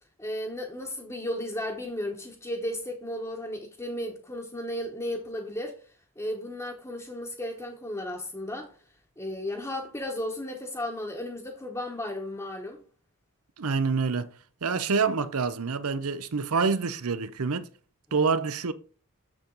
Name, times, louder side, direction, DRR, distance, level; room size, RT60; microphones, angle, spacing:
voice 1, 0.2-5.8 6.2-8.7 9.2-12.8, left 1 dB, 15° left, 1.1 m, -34 dB
voice 2, 13.6-14.3 14.6-17.7 18.1-18.7, right 5 dB, 80° right, 0.7 m, -27 dB
7.2 x 7.1 x 3.9 m
head